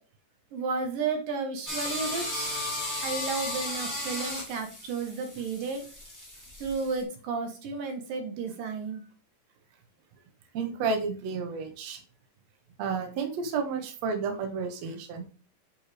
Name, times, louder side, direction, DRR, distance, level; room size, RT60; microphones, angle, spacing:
voice 1, 0.5-2.7 3.0-5.9 6.6-9.0, right 4 dB, 80° right, 4 dB, 2.9 m, -33 dB
sound 1, 1.7-7.0, left 1 dB, 10° left, 0.8 m, -35 dB
voice 2, 10.5-12.0 12.8-15.3, right 5 dB, 65° right, 4 dB, 2.0 m, -31 dB
8.8 x 4.4 x 3.3 m, 0.36 s
omnidirectional pair, 3.9 m